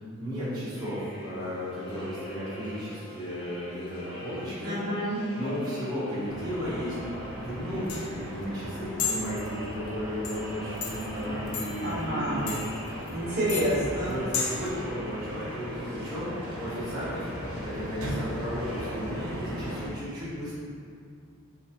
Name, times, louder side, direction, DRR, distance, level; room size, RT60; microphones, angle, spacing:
voice 1, 0.2-4.8 5.4-7.0 7.3-12.8 13.8-17.3 17.6-20.5, equal, 20° right, -12 dB, 0.8 m, -34 dB
sound 1, 0.7-18.9, equal, 25° left, 0.5 m, -44 dB
voice 2, 4.6-5.2 11.2-11.4 11.8-12.5 13.1-14.1, right 1 dB, 45° right, -8 dB, 0.9 m, -29 dB
sound 2, 6.3-19.9, equal, 85° right, 0.8 m, -39 dB
sound 3, 7.3-14.7, left 5 dB, 90° left, 0.5 m, -36 dB
3.3 x 3.2 x 2.8 m, 2.4 s
head